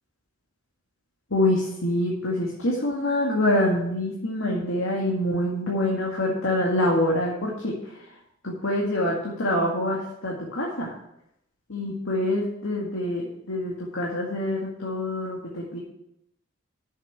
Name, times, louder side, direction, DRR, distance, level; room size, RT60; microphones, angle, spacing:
voice 1, 1.3-8.1 8.4-11.0 11.7-15.8, left 1 dB, 80° left, -3 dB, 2.0 m, -26 dB
7.4 x 6.7 x 7.9 m, 0.79 s
head